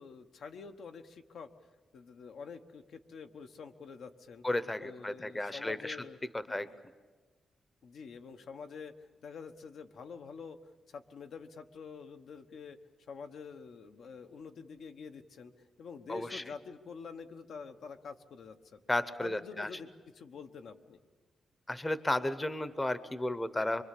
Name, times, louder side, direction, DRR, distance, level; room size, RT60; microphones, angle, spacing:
voice 1, 0.0-1.5 1.9-4.4 4.8-6.2 6.5-6.7 7.8-10.6 10.9-12.8 13.1-15.5 15.8-18.8 19.2-19.9 20.1-21.0, left 5 dB, 75° left, 6 dB, 1.1 m, -47 dB
voice 2, 4.4-6.0 6.5-6.7 16.1-16.4 18.9-19.7 21.7-23.8, left 1 dB, 15° left, 13 dB, 0.8 m, -33 dB
24.5 x 24.0 x 8.4 m, 1.4 s
wide cardioid pair, 150°, 0 cm